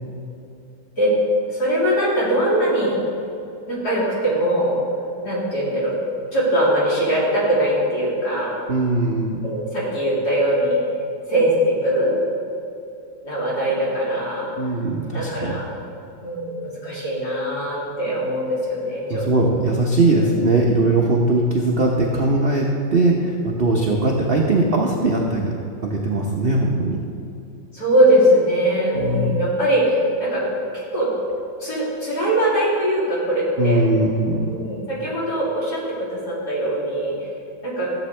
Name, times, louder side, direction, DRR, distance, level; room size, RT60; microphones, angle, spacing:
voice 1, 1.5-3.0 3.7-4.8 5.2-5.9 6.3-8.6 9.4-10.8 11.3-12.1 13.2-14.5 15.1-15.7 16.2-19.6 27.7-30.4 30.7-31.1 31.6-33.8 34.5-37.1 37.6-37.9, right 1 dB, 55° left, -7 dB, 3.4 m, -21 dB
voice 2, 8.7-9.4 14.6-15.6 19.1-25.5 25.8-27.0 28.9-29.3 33.6-34.4, right 2 dB, 50° right, -1 dB, 0.7 m, -20 dB
14.5 x 7.7 x 3.3 m, 2.7 s
omnidirectional pair, 2.1 m